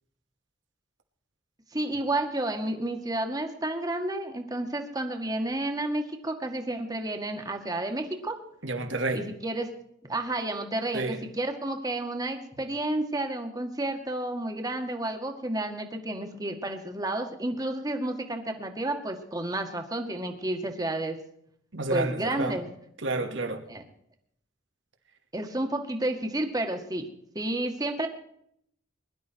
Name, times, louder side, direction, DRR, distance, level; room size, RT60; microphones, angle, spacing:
voice 1, 1.7-8.4 9.1-9.7 10.0-21.2 21.9-22.7 23.7-23.8 25.3-27.1 27.4-28.1, right 1 dB, 20° right, 4 dB, 2.0 m, -31 dB
voice 2, 8.6-9.2 10.9-11.2 21.7-22.6 23.0-23.6, right 2 dB, 80° right, 5 dB, 2.4 m, -29 dB
21.5 x 12.0 x 4.7 m, 0.71 s
head